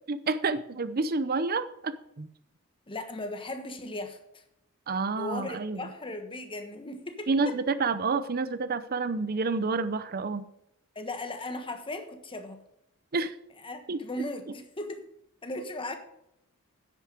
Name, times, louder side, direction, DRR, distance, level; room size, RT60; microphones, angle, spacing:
voice 1, 0.1-2.3 4.9-5.9 7.3-10.5 13.1-13.3 13.9-14.0, right 4 dB, 45° right, 13 dB, 0.7 m, -29 dB
voice 2, 2.9-4.4 5.1-7.5 10.9-12.6 13.6-15.0 15.4-15.9, left 2 dB, 25° left, 6 dB, 1.3 m, -37 dB
10.0 x 8.4 x 5.1 m, 0.78 s
head